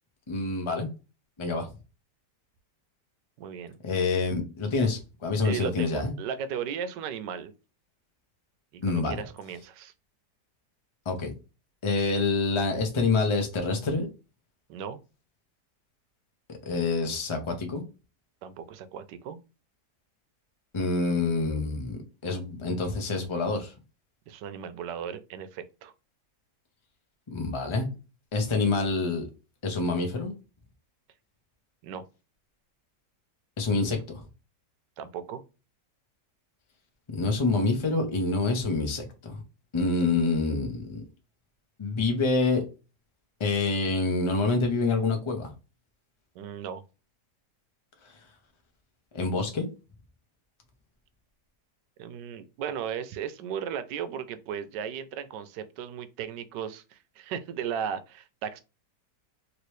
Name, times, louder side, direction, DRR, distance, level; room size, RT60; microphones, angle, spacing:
voice 1, 0.3-0.9 1.4-1.7 3.8-6.1 8.8-9.2 11.1-11.3 11.8-14.1 16.7-17.8 20.7-23.7 27.3-27.9 28.3-29.3 29.6-30.3 33.6-34.2 37.1-39.4 39.7-41.0 41.8-42.6 43.4-45.5 49.1-49.6, left 3 dB, 35° left, 0.4 m, -27 dB
voice 2, 3.4-3.8 5.4-7.5 8.7-9.9 14.7-15.0 18.4-19.4 24.3-25.9 31.8-32.0 35.0-35.4 46.3-46.8 52.0-58.6, right 8 dB, 90° right, 1.2 m, -36 dB
3.1 x 2.9 x 3.1 m
omnidirectional pair, 1.8 m